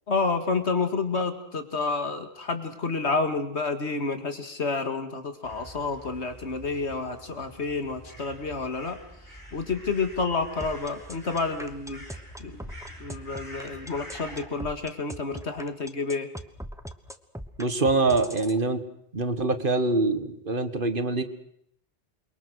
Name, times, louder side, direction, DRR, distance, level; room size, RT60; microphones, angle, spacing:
voice 1, 0.1-9.0 9.5-12.0 12.4-12.6 13.0-16.3, left 4 dB, 75° left, 7 dB, 2.5 m, -29 dB
sound 1, 5.4-14.5, equal, 15° left, 4.6 m, -46 dB
sound 2, 10.6-18.6, right 1 dB, 5° right, 1.2 m, -40 dB
voice 2, 17.6-18.8 19.1-21.2, right 3 dB, 50° right, 9 dB, 1.9 m, -24 dB
28.5 x 22.5 x 6.4 m, 0.71 s
omnidirectional pair, 1.1 m